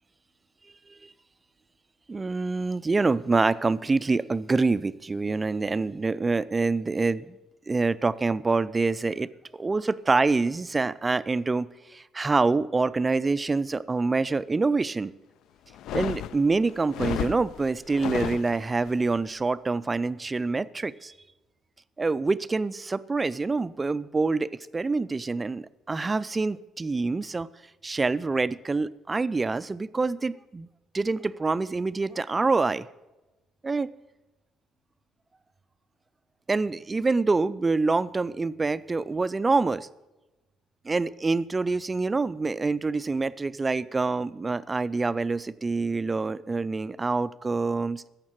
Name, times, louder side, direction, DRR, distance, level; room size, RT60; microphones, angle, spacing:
voice 1, 2.1-7.4 7.7-15.1 15.9-21.1 22.0-27.5 27.8-30.7 30.9-32.9 33.6-33.9 36.5-39.9 40.8-48.0, right 3 dB, 15° right, 16 dB, 0.3 m, -26 dB
sound 1, 15.7-18.9, left 12 dB, 65° left, 0.3 m, -33 dB
15.5 x 6.6 x 7.4 m, 1.1 s
cardioid pair, 155°, 0 cm